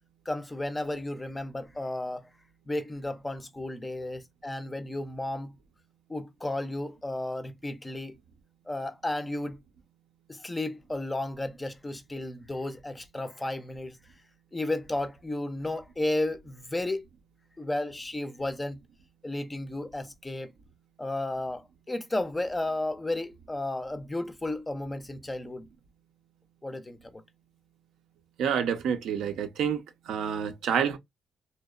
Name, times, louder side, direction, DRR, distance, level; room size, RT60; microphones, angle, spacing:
voice 1, 0.3-2.3 2.7-5.5 6.1-8.2 8.7-9.6 10.3-14.0 14.5-17.0 17.6-18.8 19.2-20.5 21.0-25.7 26.6-27.2, left 1 dB, 15° left, 0.4 m, -33 dB
voice 2, 28.4-31.0, right 7 dB, 80° right, 0.5 m, -28 dB
2.7 x 2.0 x 2.3 m
cardioid pair, 90°, 0 cm